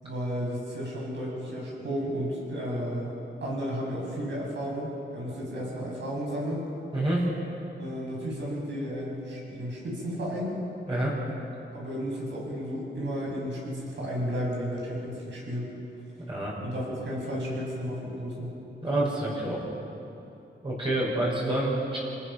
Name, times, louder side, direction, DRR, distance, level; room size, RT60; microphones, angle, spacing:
voice 1, 0.0-3.1 3.4-6.6 7.8-10.6 11.7-15.7 16.6-18.6, equal, 70° right, -3 dB, 7.5 m, -33 dB
voice 2, 6.9-7.3 10.9-11.2 16.3-16.5 18.8-19.6 20.6-22.0, right 1 dB, 25° right, -6 dB, 5.8 m, -27 dB
30.0 x 19.0 x 6.0 m, 3.0 s
wide cardioid pair, 175°, 19 cm